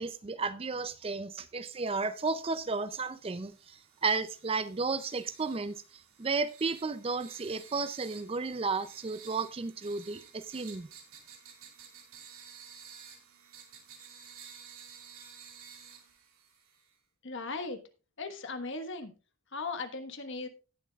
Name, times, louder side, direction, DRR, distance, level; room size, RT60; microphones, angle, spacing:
voice 1, 0.0-5.8 6.2-10.9, right 4 dB, 25° right, 0.4 m, -33 dB
sound 1, 2.1-17.0, right 7 dB, 70° right, 2.5 m, -53 dB
voice 2, 17.2-17.8 18.2-19.1 19.5-20.5, left 3 dB, 55° left, 1.4 m, -37 dB
17.5 x 7.2 x 2.4 m
head